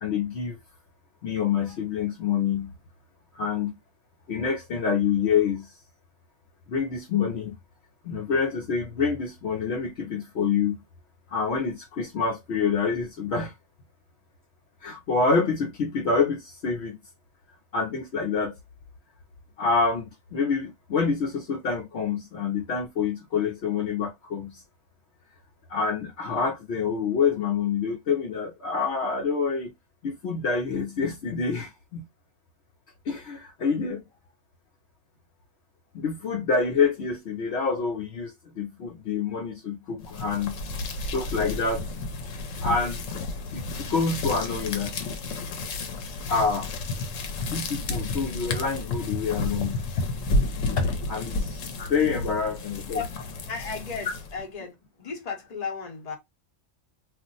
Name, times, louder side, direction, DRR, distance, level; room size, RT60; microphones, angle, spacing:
voice 1, 0.0-0.6 1.2-2.7 3.3-3.8 4.3-5.7 6.7-7.5 8.0-10.8 11.3-13.5 14.8-17.0 17.7-18.5 19.6-24.6 25.7-29.7 30.0-32.0 33.1-34.0 35.9-40.6 41.1-41.9 42.6-43.0 43.5-45.0 46.3-47.1 47.4-50.2 50.8-53.0, left 5 dB, 65° left, 0.9 m, -27 dB
sound 1, 40.0-54.5, left 2 dB, 85° left, 1.0 m, -32 dB
voice 2, 53.5-56.2, left 5 dB, 35° left, 1.0 m, -35 dB
2.5 x 2.1 x 3.9 m
omnidirectional pair, 1.3 m